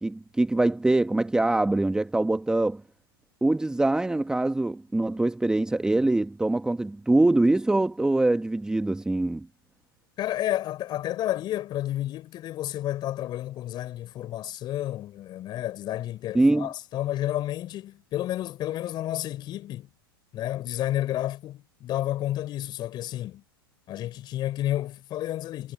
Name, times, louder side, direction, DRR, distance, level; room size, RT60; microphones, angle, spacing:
voice 1, 0.0-2.8 3.4-9.5 16.3-16.7, right 2 dB, 5° right, 1.4 m, -23 dB
voice 2, 10.2-19.9 20.3-23.4 23.9-25.7, left 13 dB, 35° left, 4.0 m, -31 dB
hypercardioid pair, 105°, 12 cm